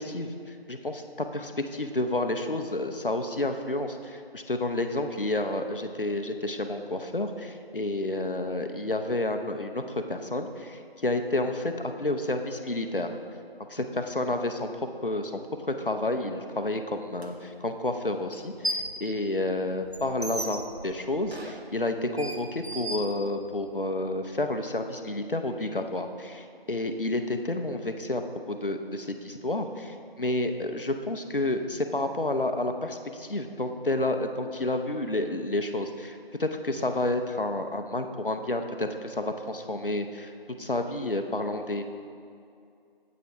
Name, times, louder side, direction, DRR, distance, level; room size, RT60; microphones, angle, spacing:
voice 1, 0.1-13.1 13.7-14.7 15.0-40.3 40.6-41.8, left 2 dB, 60° left, 6 dB, 0.6 m, -30 dB
sound 1, 17.2-17.3 18.3-19.0 19.4-23.7, right 1 dB, 85° right, 1.0 m, -36 dB
9.1 x 8.2 x 2.9 m, 2.4 s
figure-of-eight pair, 180°, 31 cm